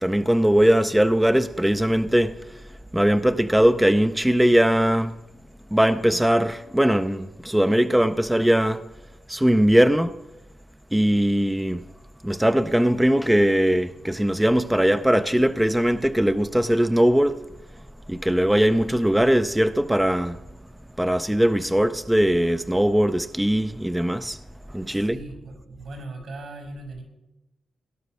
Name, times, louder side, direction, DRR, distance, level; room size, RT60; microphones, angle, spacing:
voice 1, 0.0-2.6 2.9-5.2 5.7-8.8 9.3-10.2 10.9-11.9 12.2-17.4 18.1-20.4 21.0-24.4 24.7-25.2, equal, 5° right, 0.5 m, -20 dB
voice 2, 24.9-27.0, right 2 dB, 65° right, 4.9 m, -39 dB
18.5 x 11.5 x 6.2 m
wide cardioid pair, 120°, 0 cm